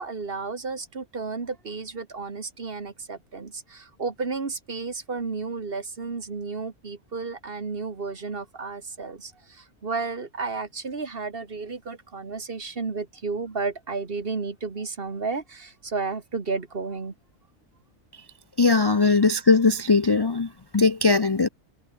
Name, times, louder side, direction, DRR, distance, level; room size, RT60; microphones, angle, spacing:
voice 1, 0.0-17.1, right 4 dB, 45° right, 1.9 m, -32 dB
voice 2, 18.6-21.5, left 4 dB, 35° left, 0.4 m, -20 dB
omnidirectional pair, 1.4 m